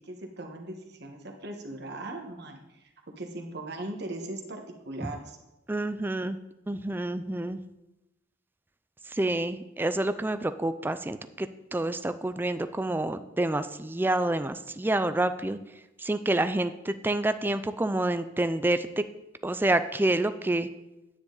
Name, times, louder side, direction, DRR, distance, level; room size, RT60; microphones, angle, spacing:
voice 1, 0.0-2.9 3.2-5.4, right 2 dB, 60° right, 3 dB, 1.4 m, -39 dB
voice 2, 5.7-6.4 6.7-7.6 9.1-15.6 16.0-19.0 19.4-20.7, right 1 dB, 10° right, 11 dB, 0.4 m, -28 dB
9.7 x 9.5 x 4.0 m, 0.95 s
head